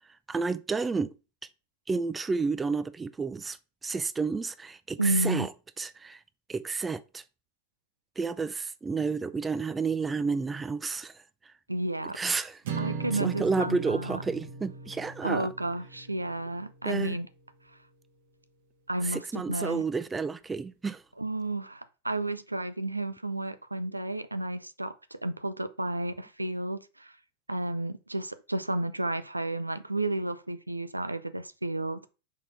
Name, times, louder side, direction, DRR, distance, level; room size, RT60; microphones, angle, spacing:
voice 1, 0.3-1.1 1.9-3.6 3.8-5.5 5.8-6.2 6.5-7.2 8.2-11.1 12.1-12.6 13.2-15.5 16.9-17.2 19.0-21.0, right 4 dB, 15° right, 0.4 m, -30 dB
voice 2, 5.0-5.5 11.7-12.2 12.8-14.2 15.2-17.3 18.9-19.8 21.2-27.2 27.5-32.1, right 1 dB, 85° right, 0.5 m, -32 dB
sound 1, 12.6-17.0, right 5 dB, 55° right, 1.4 m, -39 dB
5.0 x 4.1 x 5.7 m
figure-of-eight pair, 90°, 0 cm